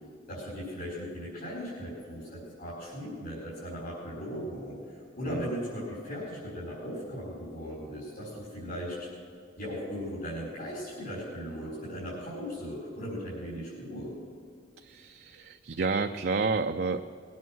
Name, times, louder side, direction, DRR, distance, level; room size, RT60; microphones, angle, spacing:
voice 1, 0.3-9.1 9.6-14.1, equal, 55° left, -8 dB, 5.1 m, -38 dB
voice 2, 14.8-17.0, right 4 dB, 60° right, 5 dB, 0.5 m, -30 dB
21.5 x 9.4 x 6.2 m, 2.3 s
head